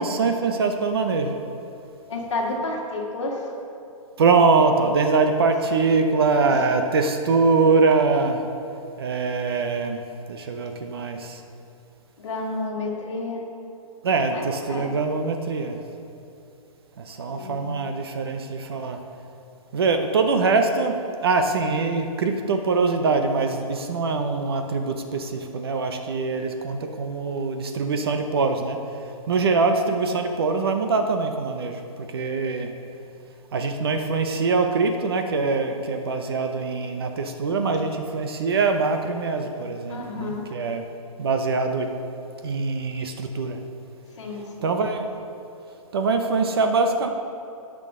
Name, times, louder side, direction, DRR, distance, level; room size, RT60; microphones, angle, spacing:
voice 1, 0.0-1.4 4.2-8.4 9.0-10.0 10.3-11.4 14.0-15.8 17.0-19.0 19.7-28.8 29.3-32.7 33.5-40.9 41.2-41.9 42.4-43.6 44.6-45.2 45.9-47.1, right 4 dB, 45° right, 6 dB, 0.7 m, -23 dB
voice 2, 2.1-3.5 6.5-6.6 12.2-13.4 14.3-14.4 14.7-14.9 17.3-17.9 39.9-40.5 44.2-44.7, left 2 dB, 55° left, -1 dB, 2.1 m, -31 dB
17.5 x 6.2 x 3.7 m, 2.6 s
hypercardioid pair, 175°, 18 cm